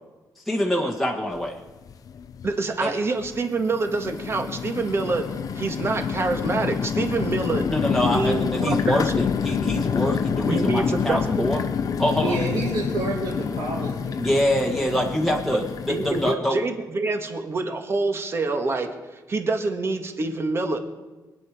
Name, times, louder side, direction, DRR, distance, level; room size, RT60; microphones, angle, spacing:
voice 1, 0.4-1.6 2.8-2.9 7.7-11.6 12.0-12.4 14.1-16.6, equal, ahead, -1 dB, 1.5 m, -25 dB
sound 1, 1.3-1.4 1.9-2.5 3.2-16.3, left 6 dB, 55° left, 0.7 m, -27 dB
voice 2, 2.4-7.7 7.9-9.2 10.5-11.5 15.9-18.9 19.3-20.8, right 3 dB, 35° right, 5 dB, 1.7 m, -26 dB
voice 3, 12.2-14.2, right 3 dB, 80° right, -9 dB, 4.5 m, -29 dB
23.0 x 9.1 x 5.0 m, 1.2 s
cardioid pair, 110°, 7 cm